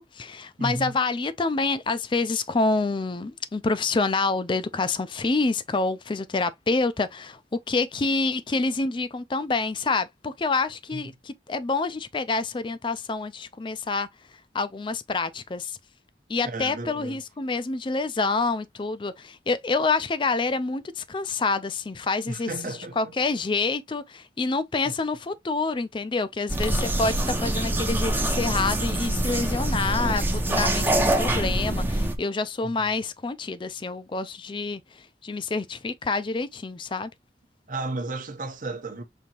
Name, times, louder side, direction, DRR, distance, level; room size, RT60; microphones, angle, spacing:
voice 1, 0.0-7.4 7.7-14.1 14.5-15.8 16.3-37.1, left 3 dB, 25° left, 0.4 m, -27 dB
voice 2, 0.6-0.9 10.9-11.0 16.4-17.2 22.3-23.1 24.8-24.9 32.6-32.7 37.7-39.0, right 2 dB, 45° right, 0.8 m, -33 dB
sound 1, 26.5-32.1, right 1 dB, 10° right, 0.6 m, -25 dB
5.2 x 2.8 x 2.8 m
head